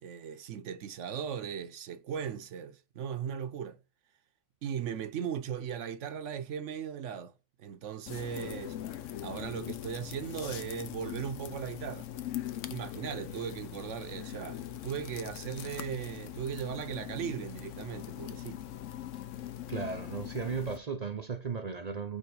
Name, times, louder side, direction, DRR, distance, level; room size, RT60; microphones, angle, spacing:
voice 1, 0.0-3.8 4.6-7.3 7.6-8.8 9.2-12.1 12.7-18.6, right 8 dB, 75° right, 1.0 m, -38 dB
sound 1, 8.1-20.8, left 11 dB, 80° left, 1.0 m, -41 dB
voice 2, 19.7-22.2, right 5 dB, 45° right, 0.6 m, -35 dB
5.4 x 4.4 x 4.7 m
omnidirectional pair, 1.3 m